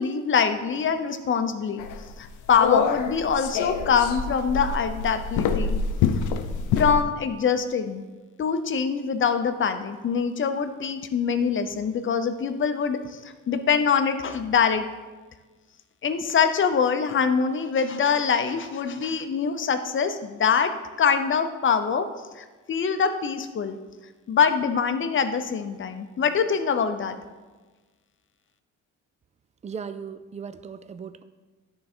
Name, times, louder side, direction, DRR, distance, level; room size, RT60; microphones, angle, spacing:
voice 1, 0.0-1.9 2.2-5.8 6.8-8.0 8.4-13.2 13.5-14.8 16.0-20.7 21.0-22.1 22.4-23.8 24.3-27.2, left 6 dB, 40° left, 9 dB, 0.7 m, -24 dB
sound 1, 1.8-7.0, left 6 dB, 80° left, 0.6 m, -26 dB
voice 2, 29.6-31.2, right 6 dB, 25° right, 12 dB, 0.4 m, -37 dB
10.0 x 3.9 x 4.3 m, 1.3 s
cardioid pair, 90°, 30 cm